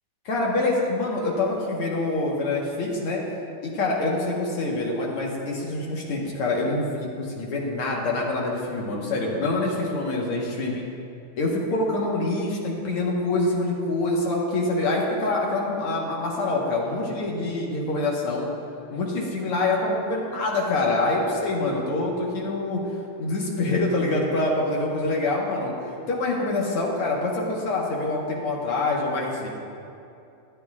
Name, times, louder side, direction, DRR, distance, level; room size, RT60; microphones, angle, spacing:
voice 1, 0.3-3.2 3.6-10.8 11.4-18.5 18.9-22.8 23.2-25.7 26.1-29.5, left 2 dB, 90° left, -2 dB, 2.3 m, -25 dB
14.0 x 10.5 x 2.4 m, 2.6 s
omnidirectional pair, 2.4 m